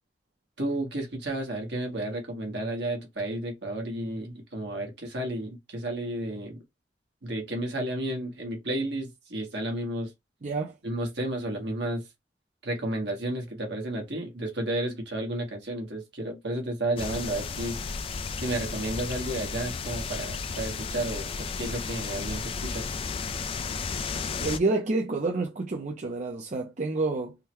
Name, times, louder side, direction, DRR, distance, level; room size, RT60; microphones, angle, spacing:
voice 1, 0.6-6.6 7.2-10.1 10.8-12.1 12.6-17.8 18.4-22.9, right 1 dB, 75° right, 1.3 m, -32 dB
voice 2, 10.4-10.8 24.4-27.4, right 3 dB, 45° right, 0.5 m, -28 dB
sound 1, 17.0-24.6, left 4 dB, 30° left, 0.3 m, -33 dB
3.6 x 2.1 x 2.9 m
head